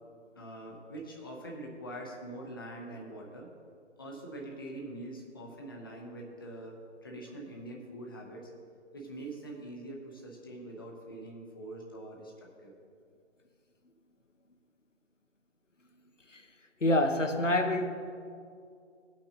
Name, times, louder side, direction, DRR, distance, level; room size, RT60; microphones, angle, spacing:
voice 1, 0.3-3.5 4.0-8.5 8.9-12.7, right 1 dB, 20° left, 0.7 m, -44 dB
voice 2, 16.8-17.9, left 1 dB, 85° left, 1.0 m, -26 dB
17.0 x 5.8 x 3.8 m
figure-of-eight pair, 150°, 36 cm